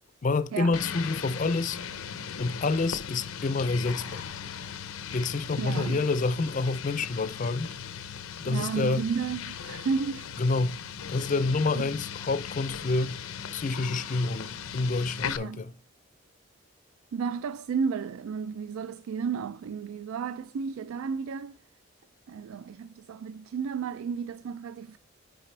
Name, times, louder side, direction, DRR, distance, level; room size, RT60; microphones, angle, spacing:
voice 1, 0.2-1.8 2.4-4.3 5.1-7.7 8.4-9.0 10.4-10.8 11.1-13.2 13.5-15.7, left 3 dB, 35° left, 0.4 m, -28 dB
sound 1, 0.7-15.4, left 7 dB, 85° left, 0.6 m, -38 dB
voice 2, 5.6-6.1 8.5-10.3 11.7-12.0 15.4-15.7 17.1-21.6 22.3-25.0, right 6 dB, 75° right, 0.3 m, -33 dB
9.1 x 4.9 x 3.2 m
head